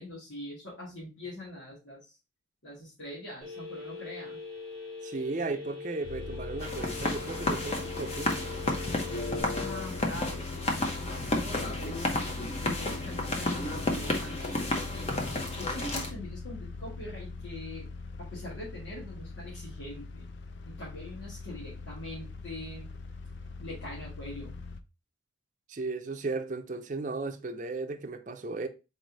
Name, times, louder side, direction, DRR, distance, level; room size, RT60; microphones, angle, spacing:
voice 1, 0.0-2.2 2.6-4.4 9.6-15.2 15.6-17.9 18.2-20.3 20.6-22.9 23.6-24.5, left 1 dB, 90° left, 2.1 m, -43 dB
Telephone, 3.4-9.4, left 4 dB, ahead, 1.6 m, -42 dB
voice 2, 5.0-8.3 25.7-28.7, right 3 dB, 40° right, 0.5 m, -35 dB
sound 1, 6.0-24.8, left 3 dB, 65° left, 0.4 m, -42 dB
sound 2, 6.6-16.1, left 1 dB, 35° left, 0.9 m, -32 dB
4.1 x 3.3 x 3.9 m
head